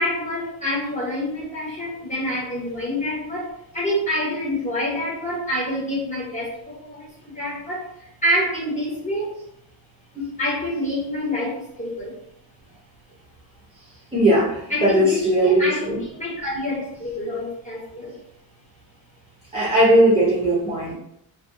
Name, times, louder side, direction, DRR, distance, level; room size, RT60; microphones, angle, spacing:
voice 1, 0.0-3.5 3.7-6.5 7.4-7.8 8.2-9.3 10.1-12.1 14.7-15.9 16.1-18.1, left 1 dB, 15° left, -6 dB, 1.2 m, -26 dB
voice 2, 14.1-16.0 19.5-20.9, right 1 dB, 15° right, -9 dB, 0.7 m, -18 dB
2.4 x 2.4 x 2.6 m, 0.75 s
cardioid pair, 115°, 47 cm